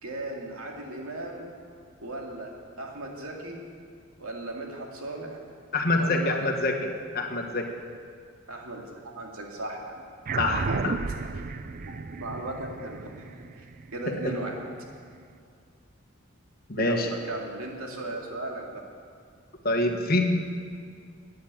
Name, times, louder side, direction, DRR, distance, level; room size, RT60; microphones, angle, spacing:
voice 1, 0.0-1.5 2.0-3.6 4.2-5.4 5.9-6.4 8.5-10.0 10.5-10.8 11.8-13.3 13.5-13.7 13.9-14.6 16.7-18.8, right 2 dB, 90° right, 0 dB, 2.4 m, -36 dB
voice 2, 5.7-6.9 7.1-7.7 10.4-10.9 14.2-14.3 16.7-17.1 19.6-20.2, left 2 dB, 45° left, 3 dB, 1.4 m, -25 dB
sound 1, 10.3-15.0, right 4 dB, 40° right, 0.4 m, -34 dB
12.5 x 9.4 x 8.8 m, 2.3 s
head